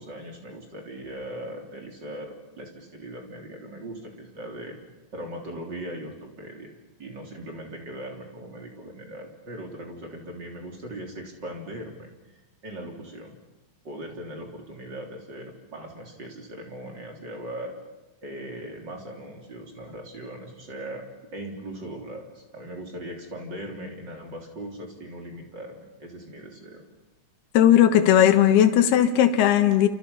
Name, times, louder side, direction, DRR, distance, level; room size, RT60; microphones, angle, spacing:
voice 1, 0.0-4.8 5.1-6.7 7.0-12.1 12.6-13.4 13.8-17.7 18.2-21.0 21.3-26.8, right 1 dB, 25° right, 1 dB, 3.6 m, -39 dB
voice 2, 27.5-29.9, left 10 dB, 70° left, 9 dB, 3.1 m, -17 dB
29.5 x 28.0 x 5.7 m, 1.1 s
omnidirectional pair, 5.1 m